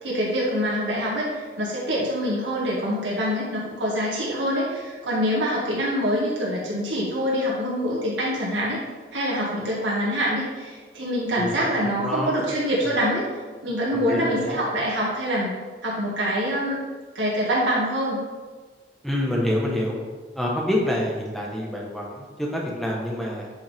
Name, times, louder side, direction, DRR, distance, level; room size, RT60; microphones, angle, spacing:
voice 1, 0.0-8.8 9.1-13.3 13.6-15.6 15.8-16.8 17.2-18.2, equal, 80° right, -6 dB, 2.0 m, -25 dB
voice 2, 11.4-12.4 13.9-14.6 19.0-20.0 20.4-23.5, left 1 dB, ahead, -3 dB, 1.2 m, -27 dB
8.8 x 5.5 x 3.6 m, 1.4 s
head